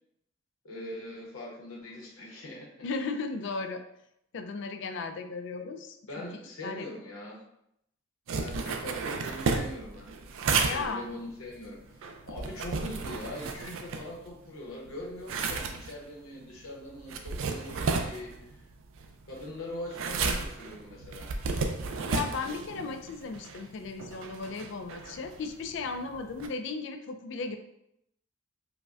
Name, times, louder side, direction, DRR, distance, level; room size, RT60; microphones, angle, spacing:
voice 1, 0.6-2.9 6.1-7.4 8.4-10.1 10.6-18.6 19.3-21.3, left 1 dB, 80° left, -3 dB, 0.8 m, -42 dB
voice 2, 2.8-3.8 4.3-6.2 6.6-6.9 10.6-11.1 22.1-27.6, left 4 dB, 60° left, 7 dB, 0.3 m, -36 dB
sound 1, 8.3-14.5 14.9-26.5, right 4 dB, 70° right, 0.4 m, -33 dB
4.8 x 2.1 x 2.4 m, 0.77 s
head